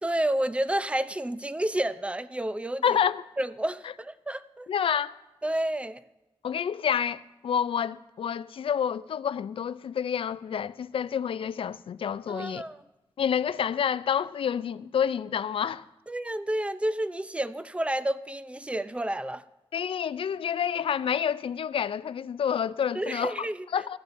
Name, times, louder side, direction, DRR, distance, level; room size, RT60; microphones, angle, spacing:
voice 1, 0.0-3.0 3.4-4.7 5.4-6.0 12.3-12.8 16.1-19.4 22.9-23.6, right 1 dB, 15° right, 0.5 m, -30 dB
voice 2, 2.8-3.2 4.7-5.1 6.4-12.6 13.2-15.8 19.7-23.5 23.7-24.0, left 8 dB, 75° left, 0.4 m, -28 dB
17.5 x 13.5 x 2.6 m
cardioid pair, 80°, 9 cm